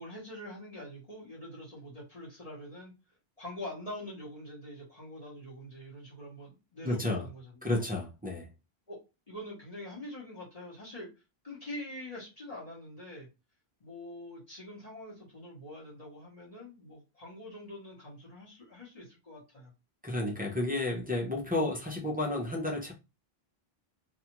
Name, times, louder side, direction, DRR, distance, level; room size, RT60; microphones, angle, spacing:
voice 1, 0.0-2.9 3.4-7.8 8.9-9.0 9.3-11.1 11.4-13.3 13.8-19.7, left 1 dB, 40° left, 1.0 m, -44 dB
voice 2, 6.8-7.3 7.6-8.5 20.0-22.9, left 2 dB, 15° right, 0.3 m, -31 dB
2.5 x 2.3 x 2.9 m
omnidirectional pair, 1.1 m